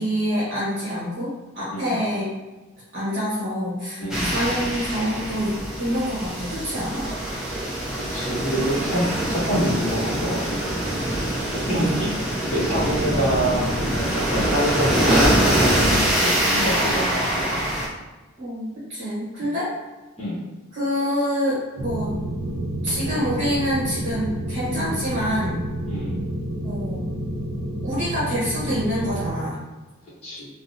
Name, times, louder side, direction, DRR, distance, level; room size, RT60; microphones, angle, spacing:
voice 1, 0.0-2.3 2.9-7.1 9.2-9.3 11.6-12.2 18.4-19.7 20.7-22.1 22.8-25.6 26.6-27.0 27.8-29.6, equal, 35° right, -9 dB, 1.0 m, -26 dB
voice 2, 4.0-4.4 8.1-9.0 9.3-10.7 11.7-12.1 12.5-17.7 20.2-20.4 24.8-24.9 25.9-26.3 30.2-30.5, equal, 30° left, -9 dB, 0.8 m, -26 dB
sound 1, 4.1-17.9, right 1 dB, ahead, 0.4 m, -24 dB
sound 2, 21.8-29.3, right 1 dB, 75° right, 0.5 m, -29 dB
3.4 x 2.0 x 2.5 m, 1.2 s
head